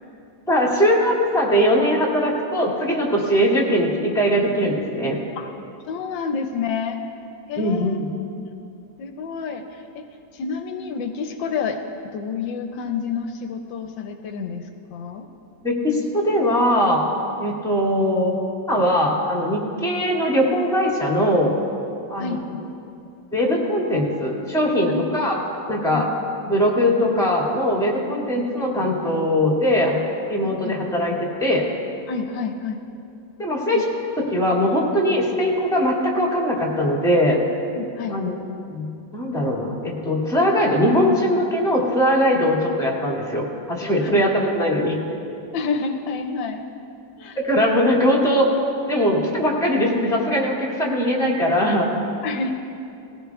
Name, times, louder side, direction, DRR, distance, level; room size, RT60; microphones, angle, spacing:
voice 1, 0.5-5.2 7.6-8.1 15.6-17.0 17.4-18.3 18.7-21.5 22.1-22.4 23.3-25.3 25.7-26.1 26.5-30.0 30.3-31.6 33.4-33.9 34.2-37.4 38.1-38.4 38.7-38.9 39.1-45.0 47.4-48.5 48.9-51.9, equal, ahead, -4 dB, 2.1 m, -20 dB
voice 2, 5.9-7.0 7.5-8.0 9.0-10.0 10.3-11.8 12.1-15.2 22.2-22.6 24.9-25.0 25.9-26.0 30.4-30.7 32.1-32.8 37.7-38.2 44.0-44.2 45.5-46.6 47.2-47.4 52.2-52.5, left 5 dB, 80° left, 5 dB, 1.4 m, -29 dB
19.0 x 16.0 x 2.4 m, 2.7 s
omnidirectional pair, 2.0 m